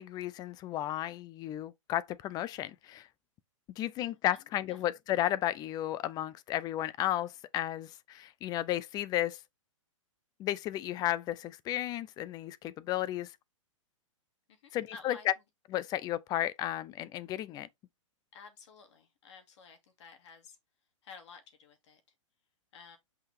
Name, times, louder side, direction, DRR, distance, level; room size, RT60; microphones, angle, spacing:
voice 1, 0.0-3.1 3.8-9.4 10.4-13.3 14.7-15.3 15.7-17.7, left 13 dB, 25° left, 0.5 m, -33 dB
voice 2, 14.5-15.3 18.3-20.6 21.0-22.0 22.7-23.0, left 5 dB, 60° left, 2.5 m, -52 dB
6.0 x 5.4 x 3.5 m
hypercardioid pair, 135°, 17 cm